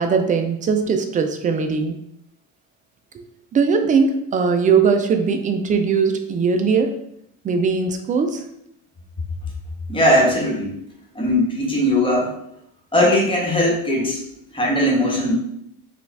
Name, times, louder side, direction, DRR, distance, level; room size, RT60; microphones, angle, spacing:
voice 1, 0.0-2.0 3.1-3.2 3.5-6.9 7.4-8.4, right 5 dB, 25° right, 6 dB, 0.3 m, -20 dB
voice 2, 9.9-10.8 11.1-12.3 12.9-14.2 14.5-15.3, left 1 dB, 15° left, -3 dB, 1.2 m, -19 dB
4.9 x 2.4 x 3.3 m, 0.75 s
cardioid pair, 135°, 37 cm